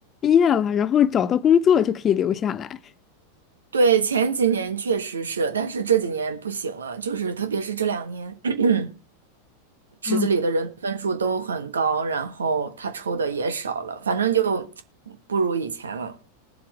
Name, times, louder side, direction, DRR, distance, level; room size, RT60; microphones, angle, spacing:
voice 1, 0.2-2.8 10.1-10.3, left 8 dB, 25° left, 0.6 m, -20 dB
voice 2, 3.7-8.9 10.0-14.7 15.1-16.1, right 5 dB, 70° right, 1.3 m, -24 dB
20.0 x 7.5 x 3.4 m
figure-of-eight pair, 90°, 0 cm